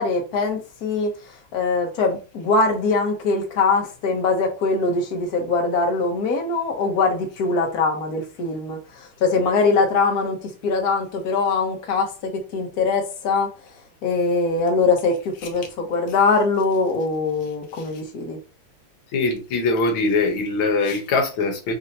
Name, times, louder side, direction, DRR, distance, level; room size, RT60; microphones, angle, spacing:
voice 1, 0.0-18.4 20.8-21.0, left 3 dB, 55° left, 1.2 m, -22 dB
voice 2, 19.1-21.7, left 3 dB, 70° left, 1.7 m, -22 dB
4.3 x 2.7 x 2.7 m
omnidirectional pair, 2.4 m